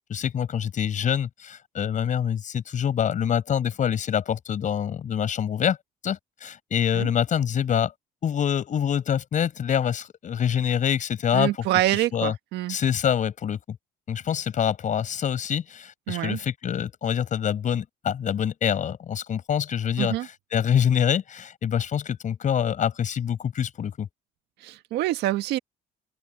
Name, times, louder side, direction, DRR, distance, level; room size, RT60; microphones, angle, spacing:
voice 1, 0.1-5.8 6.0-7.9 8.2-11.5 12.1-12.3 12.7-13.8 14.1-24.1, left 8 dB, 50° left, 5.2 m, -25 dB
voice 2, 11.3-12.8 16.1-16.4 20.0-20.3 24.6-25.6, right 15 dB, 85° right, 1.6 m, -26 dB
open air
cardioid pair, 110°, 17 cm